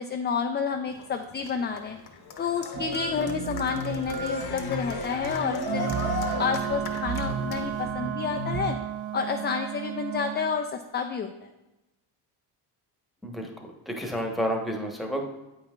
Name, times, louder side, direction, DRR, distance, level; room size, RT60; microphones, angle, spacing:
voice 1, 0.0-2.0 2.4-8.8 9.1-11.5, left 6 dB, 25° left, 4 dB, 0.3 m, -30 dB
Cheering, 0.9-7.9, left 3 dB, 55° left, 0.9 m, -37 dB
sound 1, 2.7-8.7, right 3 dB, 45° right, 1.0 m, -34 dB
Wind instrument woodwind instrument, 5.6-10.4, right 11 dB, 80° right, 0.8 m, -33 dB
voice 2, 13.9-15.2, equal, ahead, 1 dB, 1.0 m, -30 dB
8.3 x 5.6 x 2.4 m, 0.99 s
cardioid pair, 80°, 46 cm